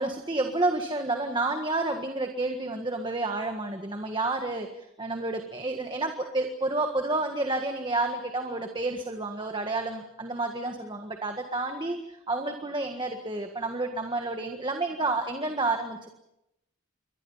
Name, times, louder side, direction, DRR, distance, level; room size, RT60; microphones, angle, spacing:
voice 1, 0.0-16.1, right 2 dB, 20° right, 4 dB, 1.6 m, -30 dB
28.5 x 24.0 x 5.7 m, 0.86 s
head